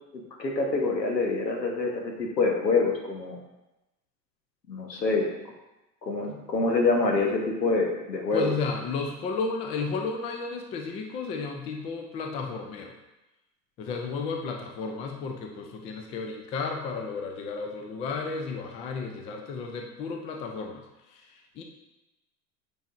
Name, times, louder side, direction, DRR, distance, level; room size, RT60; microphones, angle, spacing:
voice 1, 0.4-3.4 4.7-5.3 6.0-8.5, left 3 dB, 90° left, 1 dB, 1.2 m, -26 dB
voice 2, 8.3-12.9 13.8-20.8 21.1-21.2 21.6-21.7, left 4 dB, 15° left, 4 dB, 0.3 m, -33 dB
8.8 x 4.5 x 2.5 m, 0.99 s
figure-of-eight pair, 90°, 48 cm